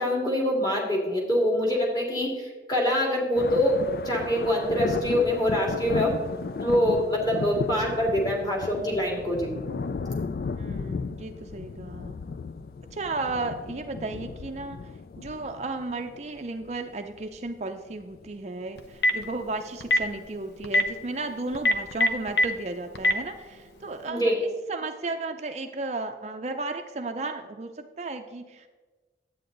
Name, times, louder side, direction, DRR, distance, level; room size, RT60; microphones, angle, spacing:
voice 1, 0.0-6.1 6.6-9.5 24.1-24.4, equal, 25° left, -2 dB, 2.2 m, -25 dB
sound 1, 3.3-17.5 18.0-18.3 19.2-19.4 20.2-20.3 21.8-21.9, left 4 dB, 55° left, 0.3 m, -35 dB
voice 2, 10.6-12.2 12.9-14.9 15.2-28.7, right 3 dB, 40° right, 5 dB, 0.5 m, -34 dB
Telephone, 18.8-19.2 19.8-20.0 20.6-20.8 21.5-22.5 23.0-23.1, left 1 dB, 75° left, 0.8 m, -20 dB
11.0 x 8.5 x 3.9 m, 1.3 s
head